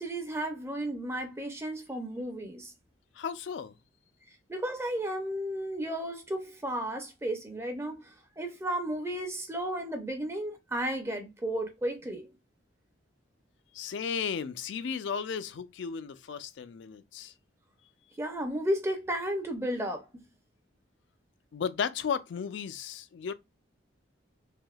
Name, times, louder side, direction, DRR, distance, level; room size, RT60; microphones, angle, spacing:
voice 1, 0.0-2.7 4.5-12.3 18.2-20.1, right 1 dB, 15° right, 0.4 m, -33 dB
voice 2, 3.1-3.7 13.7-17.3 21.5-23.3, left 6 dB, 75° left, 0.4 m, -34 dB
3.4 x 2.6 x 2.2 m
head